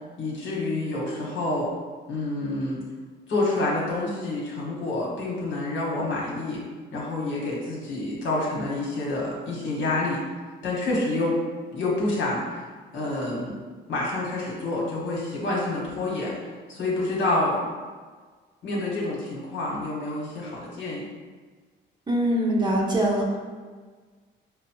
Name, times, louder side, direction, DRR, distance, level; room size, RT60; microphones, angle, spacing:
voice 1, 0.2-1.7 2.1-2.8 3.3-6.6 6.9-10.2 10.6-11.4 11.7-12.6 12.9-13.5 13.9-16.3 16.7-17.7 18.6-21.1, left 2 dB, 70° left, -4 dB, 1.2 m, -28 dB
voice 2, 22.1-23.4, right 1 dB, 20° right, -2 dB, 0.7 m, -23 dB
5.0 x 2.0 x 2.9 m, 1.5 s
cardioid pair, 90°, 20 cm